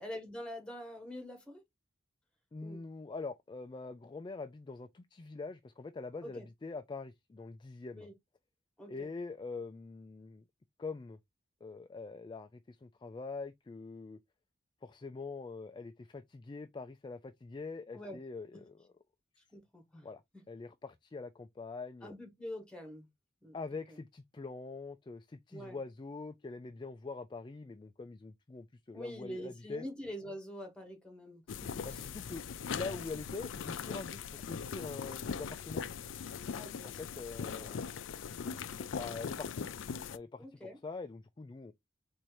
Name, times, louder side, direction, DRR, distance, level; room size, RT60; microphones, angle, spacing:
voice 1, 0.0-1.6 2.6-2.8 6.2-6.5 7.9-8.1 8.8-9.1 17.9-18.2 18.5-18.6 19.5-20.1 22.0-23.1 23.4-24.0 25.5-25.8 28.9-32.1 36.5-37.2 39.1-39.3 40.4-40.8, equal, 5° left, 1.4 m, -46 dB
voice 2, 2.5-8.1 8.9-10.4 10.8-11.2 11.6-14.2 14.8-18.9 20.0-20.2 20.5-22.1 23.5-29.8 31.8-32.4 32.7-35.8 37.0-37.9 38.9-39.7 40.1-41.7, left 3 dB, 25° left, 0.3 m, -44 dB
sound 1, 31.5-40.2, left 6 dB, 90° left, 0.4 m, -40 dB
4.3 x 2.6 x 4.6 m
head